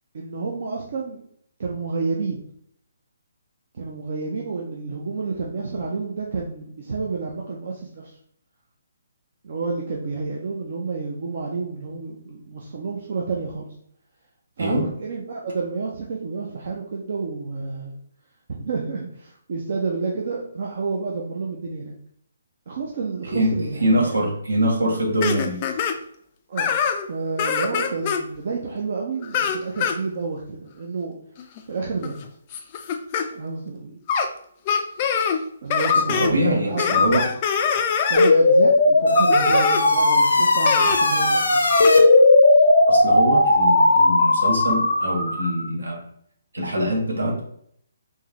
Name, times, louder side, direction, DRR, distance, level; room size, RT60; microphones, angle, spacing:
voice 1, 0.1-1.2 1.6-2.4 3.7-8.2 9.4-13.7 14.6-17.9 18.5-21.9 22.7-24.1 26.5-26.8 27.1-31.1 31.7-32.1 33.3-34.0 35.6-37.3 38.1-41.6, right 4 dB, 50° right, -1 dB, 0.6 m, -30 dB
voice 2, 14.6-14.9 23.2-25.6 36.1-37.2 42.9-46.0 46.5-47.4, right 1 dB, 75° right, -1 dB, 1.2 m, -23 dB
sound 1, 25.2-25.9 26.6-27.1 27.4-28.2 29.2-30.0 31.4-31.6 32.0-33.2 34.1-34.3 34.7-35.4 35.7-36.3 36.8-38.3 39.1-39.8 40.6-41.0 41.7-41.9, left 7 dB, 30° left, 0.4 m, -23 dB
sound 2, 38.2-45.6, left 2 dB, 70° left, 0.7 m, -17 dB
3.7 x 2.7 x 3.0 m, 0.66 s
figure-of-eight pair, 135°, 0 cm